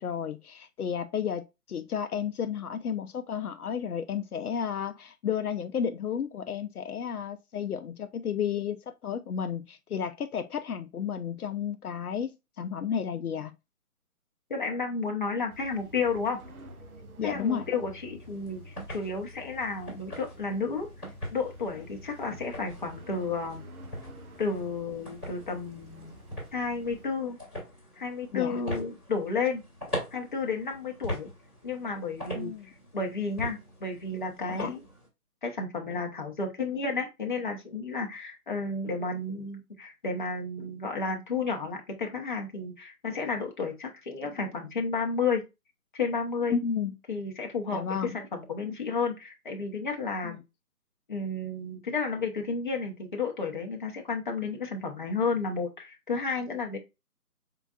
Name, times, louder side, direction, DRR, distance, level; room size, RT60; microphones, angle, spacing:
voice 1, 0.0-13.5 17.2-17.7 28.3-28.6 32.3-32.7 34.5-34.7 46.5-47.0 47.7-48.2 50.2-50.4, left 7 dB, 75° left, 0.6 m, -32 dB
voice 2, 14.5-16.4 17.2-20.9 21.3-23.7 24.4-26.2 26.5-27.4 28.0-29.6 30.1-31.3 31.6-34.8 35.4-45.4 45.9-46.6 47.1-50.4 51.1-56.8, left 4 dB, 30° left, 0.9 m, -32 dB
sound 1, 15.5-27.0, equal, 65° right, 1.2 m, -49 dB
sound 2, 18.2-35.1, left 1 dB, ahead, 1.1 m, -42 dB
5.0 x 3.7 x 2.3 m
figure-of-eight pair, 165°, 46 cm